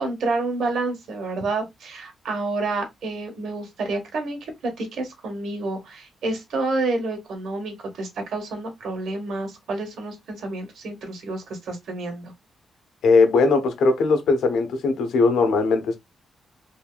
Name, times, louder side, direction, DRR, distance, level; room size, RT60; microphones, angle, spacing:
voice 1, 0.0-4.5 4.8-12.3, right 3 dB, 75° right, 1.4 m, -29 dB
voice 2, 13.0-16.0, left 4 dB, 85° left, 0.9 m, -19 dB
3.4 x 2.8 x 2.3 m
cardioid pair, 115°, 0 cm